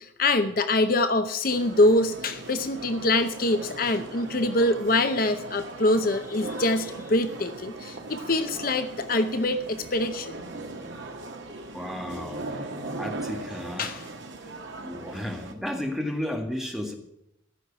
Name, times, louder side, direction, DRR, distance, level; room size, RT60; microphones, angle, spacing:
voice 1, 0.0-10.3 13.8-14.1, left 2 dB, 50° left, 9 dB, 0.8 m, -24 dB
sound 1, 1.5-15.5, right 2 dB, 75° right, 1.8 m, -39 dB
voice 2, 11.7-12.5 13.0-13.9 14.4-14.5 14.8-16.9, left 1 dB, ahead, 2 dB, 1.8 m, -33 dB
14.5 x 6.4 x 9.9 m, 0.82 s
head